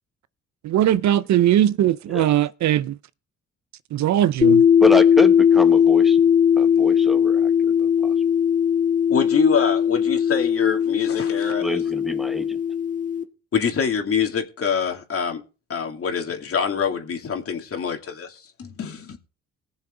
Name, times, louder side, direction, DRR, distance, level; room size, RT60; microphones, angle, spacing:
voice 1, 0.6-3.0 3.9-4.7, right 12 dB, 65° right, 0.6 m, -20 dB
sound 1, 4.4-13.2, left 8 dB, 25° left, 1.8 m, -18 dB
voice 2, 4.8-6.2 6.6-7.5 7.8-8.1 11.6-12.6, left 1 dB, ahead, 1.3 m, -26 dB
voice 3, 9.1-11.8 13.5-15.4 15.7-19.2, left 6 dB, 50° left, 2.6 m, -25 dB
19.5 x 7.0 x 3.7 m
cardioid pair, 90°, 30 cm